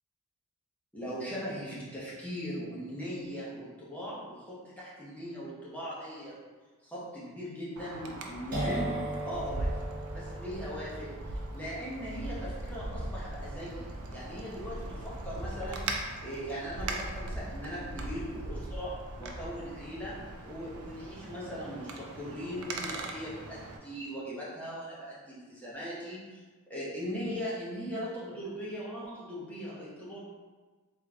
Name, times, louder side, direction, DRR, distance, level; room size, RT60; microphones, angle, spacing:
voice 1, 0.9-6.3 6.8-9.7 10.1-11.1 11.5-15.8 16.2-20.1 20.4-26.4 26.7-30.2, equal, 5° left, -8 dB, 1.1 m, -39 dB
Wind, 7.8-23.8, right 2 dB, 80° right, 0.5 m, -40 dB
sound 1, 8.5-16.1, right 1 dB, 40° right, 1.1 m, -39 dB
3.8 x 3.1 x 3.6 m, 1.4 s
head